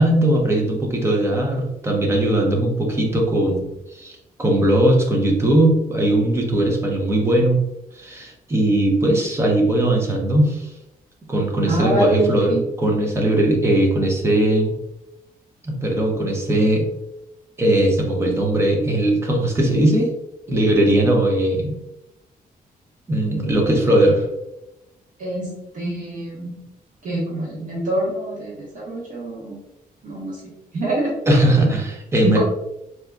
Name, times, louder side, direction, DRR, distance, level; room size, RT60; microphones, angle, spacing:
voice 1, 0.0-7.6 7.9-10.7 11.3-14.7 15.6-16.9 17.6-20.1 20.5-21.8 23.1-24.3 31.3-32.4, right 1 dB, 15° right, 0 dB, 0.6 m, -19 dB
voice 2, 11.7-12.6 25.2-26.6 27.0-29.6 30.0-31.1 32.2-32.4, right 1 dB, 60° right, -5 dB, 1.1 m, -25 dB
3.6 x 2.7 x 2.2 m, 0.90 s
wide cardioid pair, 180°, 15 cm